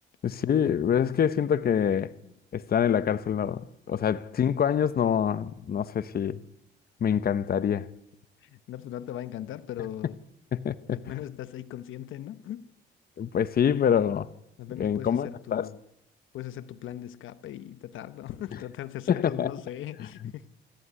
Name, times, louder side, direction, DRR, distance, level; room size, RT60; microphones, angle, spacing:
voice 1, 0.2-2.1 2.5-6.4 7.0-7.9 10.5-11.0 13.2-14.3 14.8-15.7 19.1-19.5, left 8 dB, 50° left, 1.0 m, -25 dB
voice 2, 8.4-10.2 10.9-12.7 14.6-15.8 16.3-20.5, left 12 dB, 80° left, 1.0 m, -39 dB
25.0 x 14.5 x 9.6 m
cardioid pair, 90°, 20 cm